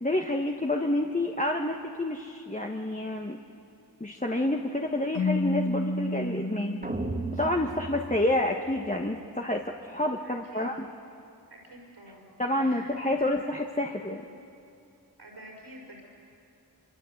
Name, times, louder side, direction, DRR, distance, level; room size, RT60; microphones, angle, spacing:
voice 1, 0.0-3.4 4.0-6.8 7.3-10.9 12.4-14.2, left 1 dB, 20° left, 1 dB, 1.4 m, -28 dB
Keyboard (musical), 5.1-7.9, left 2 dB, 85° left, 2.5 m, -31 dB
sound 1, 6.8-9.1, right 2 dB, 20° right, 1.9 m, -36 dB
voice 2, 10.2-10.7 11.5-12.3 12.5-13.3 15.2-16.0, right 1 dB, 80° right, 0 dB, 5.1 m, -48 dB
24.5 x 24.0 x 8.0 m, 2.7 s
cardioid pair, 40°, 40 cm